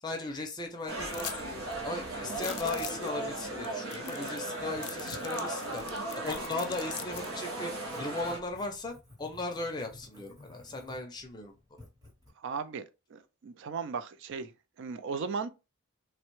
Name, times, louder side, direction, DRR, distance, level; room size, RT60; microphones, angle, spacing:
voice 1, 0.0-1.5 1.8-5.8 6.2-7.7 8.0-11.5, left 2 dB, 20° left, 0.5 m, -37 dB
sound 1, 0.9-8.4, right 2 dB, 75° right, 0.9 m, -37 dB
sound 2, 1.1-1.4 1.7-1.8 2.3-3.1 3.6-3.7 3.9-4.5 4.8-7.3, left 12 dB, 75° left, 0.4 m, -42 dB
Writing, 4.6-12.3, left 1 dB, 20° right, 0.8 m, -55 dB
voice 2, 12.4-12.8 13.1-14.5 14.8-15.5, right 5 dB, 60° right, 0.4 m, -36 dB
3.2 x 2.1 x 3.0 m
head